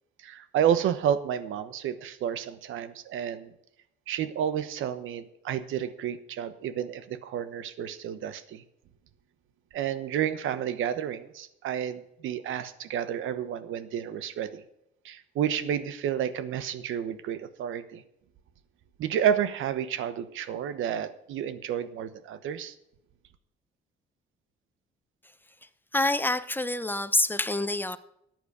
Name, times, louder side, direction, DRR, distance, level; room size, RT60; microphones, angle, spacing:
voice 1, 0.2-3.5 4.1-8.6 9.7-14.6 15.0-18.0 19.0-22.7, right 9 dB, 80° right, 13 dB, 1.1 m, -30 dB
voice 2, 25.9-28.0, left 2 dB, 10° left, 13 dB, 0.8 m, -26 dB
14.0 x 9.3 x 5.1 m, 0.79 s
cardioid pair, 90°, 20 cm